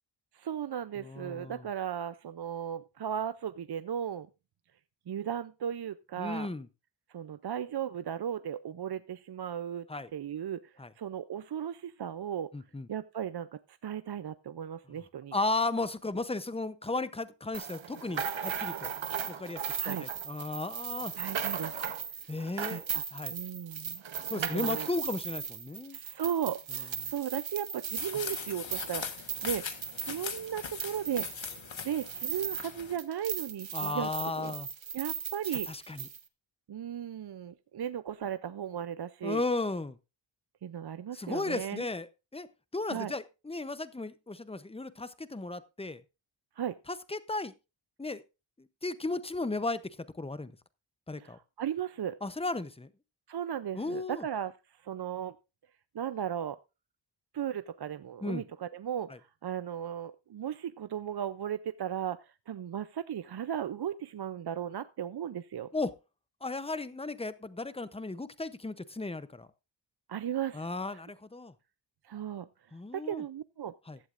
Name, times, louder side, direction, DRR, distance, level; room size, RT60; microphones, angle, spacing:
voice 1, 0.3-4.3 5.1-6.5 7.1-12.5 12.9-15.3 19.8-20.1 21.1-21.8 22.7-23.0 23.3-24.0 24.3-24.9 25.9-31.3 31.8-34.5 34.9-35.7 36.7-39.4 40.6-41.9 42.9-43.1 46.6-46.8 51.2-52.2 53.3-55.4 55.9-56.6 57.3-65.7 70.1-70.7 72.0-72.5 72.9-73.7, right 9 dB, 55° right, 13 dB, 0.5 m, -36 dB
voice 2, 1.0-1.6 6.2-6.7 9.9-10.1 10.8-10.9 12.5-12.9 15.3-18.9 19.3-21.1 22.3-22.8 23.1-23.3 24.3-26.0 33.7-34.7 35.5-36.1 39.2-40.0 41.1-42.5 42.7-46.0 47.1-47.5 48.0-48.2 48.6-49.8 50.1-50.6 51.1-51.4 52.2-52.9 53.7-54.2 58.2-58.4 65.7-65.9 66.4-69.5 70.5-71.5 72.7-73.2 73.9-74.0, left 2 dB, 10° left, 14 dB, 0.7 m, -35 dB
sound 1, 17.5-32.7 33.0-36.2, right 8 dB, 70° right, 1.1 m, -37 dB
sound 2, 28.0-33.0, left 6 dB, 70° left, 1.6 m, -40 dB
15.5 x 11.5 x 2.5 m, 0.28 s
wide cardioid pair, 110°, 48 cm